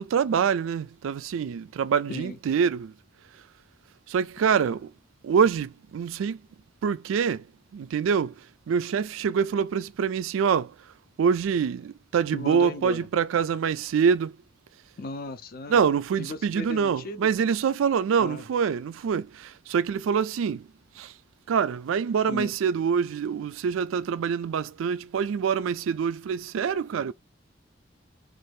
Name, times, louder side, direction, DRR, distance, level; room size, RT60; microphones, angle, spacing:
voice 1, 0.0-2.9 4.1-4.9 5.2-6.4 6.8-7.4 7.7-8.3 8.7-10.7 11.2-14.4 15.7-20.7 21.0-21.1 21.5-27.1, right 7 dB, 85° right, 0.3 m, -25 dB
voice 2, 12.3-13.1 15.0-15.8 16.2-17.3 18.2-18.4 22.3-22.5, left 2 dB, 50° left, 0.5 m, -36 dB
2.7 x 2.5 x 3.2 m
head